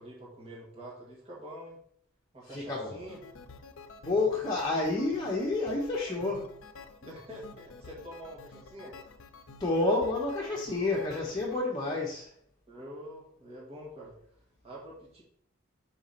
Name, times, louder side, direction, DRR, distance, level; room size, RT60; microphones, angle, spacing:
voice 1, 0.0-1.8 2.3-3.2 7.0-9.0 12.7-14.2 14.6-15.2, equal, 30° right, -6 dB, 1.9 m, -46 dB
voice 2, 2.5-3.0 4.0-6.5 9.6-12.3, left 2 dB, 20° left, -5 dB, 1.1 m, -29 dB
sound 1, 3.0-11.6, left 4 dB, 70° left, 0.6 m, -50 dB
5.2 x 4.6 x 5.8 m, 0.67 s
head